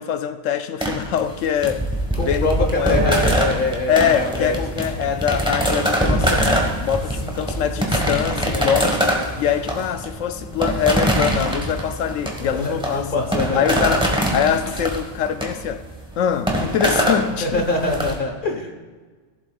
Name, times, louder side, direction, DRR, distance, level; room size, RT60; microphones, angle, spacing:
voice 1, 0.0-1.9 2.2-3.4 3.9-9.0 9.3-13.1 13.5-15.8 16.2-17.7, left 8 dB, 90° left, 1.0 m, -23 dB
sound 1, 0.8-18.1, equal, 5° right, 1.2 m, -23 dB
voice 2, 2.1-4.5 5.0-5.1 7.2-8.7 12.4-13.9 17.4-18.7, left 2 dB, 45° left, 1.3 m, -25 dB
15.0 x 7.6 x 2.4 m
omnidirectional pair, 1.3 m